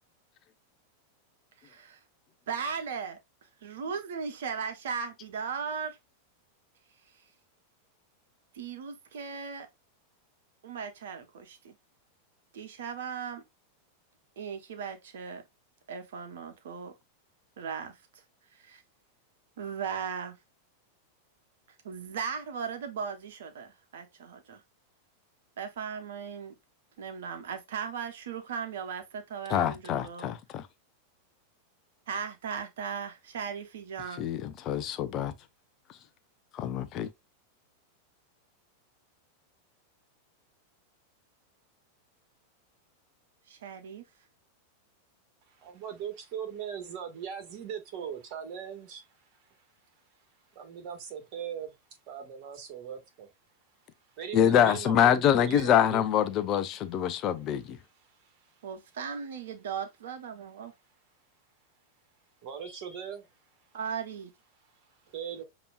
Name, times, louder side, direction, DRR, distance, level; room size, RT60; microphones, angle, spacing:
voice 1, 1.6-2.0 2.5-6.0 7.1-7.2 8.5-9.7 10.6-11.7 12.5-13.4 14.4-15.4 15.9-16.9 17.6-18.2 18.5-18.8 19.6-20.4 21.8-24.6 25.6-26.5 27.0-30.3 32.1-34.2 43.5-44.1 58.6-60.7 63.7-64.3, right 6 dB, 60° right, 1.1 m, -37 dB
voice 2, 29.5-30.6 34.2-35.3 36.5-37.1 54.3-57.8, left 9 dB, 35° left, 0.6 m, -25 dB
voice 3, 45.6-49.0 50.6-51.8 52.1-53.3 54.2-56.0 58.1-58.3 62.4-63.3 65.1-65.4, right 8 dB, 45° right, 1.6 m, -39 dB
6.8 x 3.0 x 2.4 m
figure-of-eight pair, 90°, 0 cm